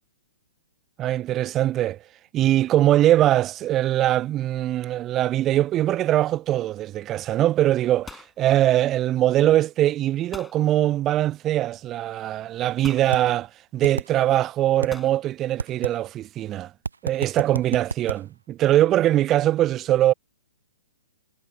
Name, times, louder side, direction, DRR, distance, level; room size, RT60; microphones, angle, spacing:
voice 1, 1.0-2.0 2.3-16.7 17.0-20.1, right 13 dB, 20° right, 0.8 m, -22 dB
sound 1, 6.4-6.8 7.0-7.4 7.7-9.3 10.3-10.6 11.8-11.9 12.8-13.2 14.9-15.2, left 4 dB, 5° left, 7.6 m, -43 dB
sound 2, 13.1-13.2 13.8-14.1 14.8-14.9 15.6-15.9 16.9-18.2, right 4 dB, 70° right, 0.4 m, -28 dB
figure-of-eight pair, 120°, 0 cm